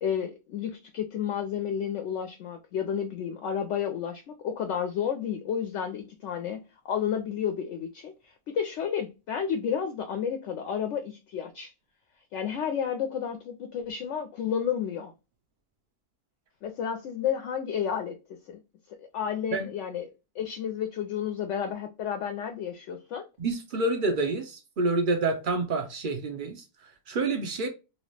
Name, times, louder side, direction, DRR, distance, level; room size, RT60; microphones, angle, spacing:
voice 1, 0.0-11.7 12.3-15.1 16.6-18.2 18.5-18.6 19.0-20.1 20.4-23.3, left 8 dB, 70° left, 0.7 m, -31 dB
voice 2, 23.4-27.7, right 3 dB, 70° right, 0.4 m, -28 dB
2.9 x 2.8 x 3.1 m
omnidirectional pair, 1.6 m